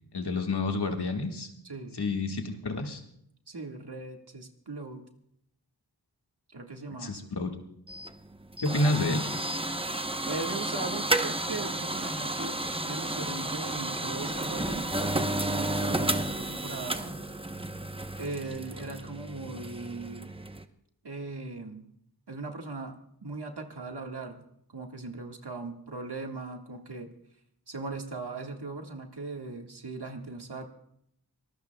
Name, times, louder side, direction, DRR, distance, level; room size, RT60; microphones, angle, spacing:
voice 1, 0.1-1.5 1.9-3.0 7.0-7.5 8.6-9.3, left 2 dB, 75° left, 3 dB, 1.8 m, -29 dB
voice 2, 1.6-2.0 3.5-5.0 6.5-7.3 10.3-17.2 18.2-20.3 21.0-21.9 22.3-24.4 24.7-27.1 27.7-30.7, right 3 dB, 70° right, 3 dB, 1.8 m, -39 dB
sound 1, 7.9-20.6, right 1 dB, 15° right, 0.9 m, -32 dB
24.5 x 19.5 x 2.3 m, 0.72 s
wide cardioid pair, 50°, 40 cm